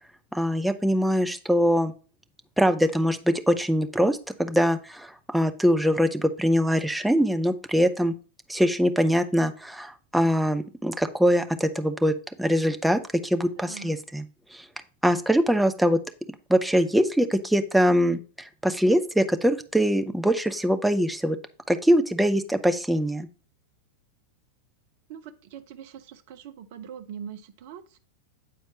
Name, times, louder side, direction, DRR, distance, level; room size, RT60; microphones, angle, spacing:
voice 1, 0.3-1.9 2.6-8.1 8.5-14.3 14.5-14.7 15.0-16.0 16.5-21.4 21.7-23.3, equal, 5° right, 8 dB, 0.5 m, -23 dB
voice 2, 13.6-13.9 25.1-28.0, right 8 dB, 50° right, 10 dB, 0.6 m, -42 dB
8.4 x 4.4 x 2.8 m, 0.38 s
figure-of-eight pair, 90°, 0 cm